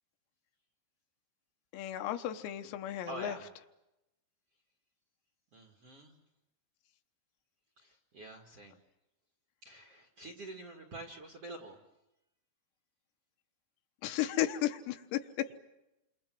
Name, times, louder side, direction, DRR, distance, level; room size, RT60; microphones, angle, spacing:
voice 1, 1.7-3.4 14.0-15.6, left 13 dB, 90° left, 7 dB, 3.9 m, -34 dB
voice 2, 3.1-3.5 5.5-6.2 7.8-8.8 9.6-11.8, right 2 dB, 50° right, 2 dB, 1.8 m, -47 dB
29.0 x 26.5 x 7.7 m, 0.93 s
omnidirectional pair, 5.9 m